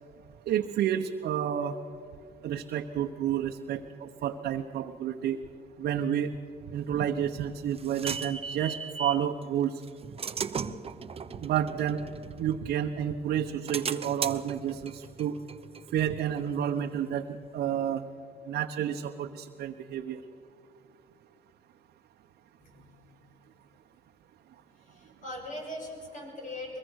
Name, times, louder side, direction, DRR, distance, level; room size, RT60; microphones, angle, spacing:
voice 1, 0.5-1.8 2.4-5.4 5.8-6.3 6.7-9.8 11.4-12.0 12.4-15.4 15.9-18.0 18.5-20.2, right 9 dB, 70° right, 2 dB, 1.0 m, -30 dB
sound 1, 7.1-9.3 9.8-12.9 13.3-16.8, right 6 dB, 35° right, 0.9 m, -38 dB
voice 2, 22.6-23.8 24.6-26.8, left 1 dB, 50° left, 1 dB, 7.1 m, -42 dB
22.5 x 22.0 x 6.4 m, 2.3 s
cardioid pair, 85°, 17 cm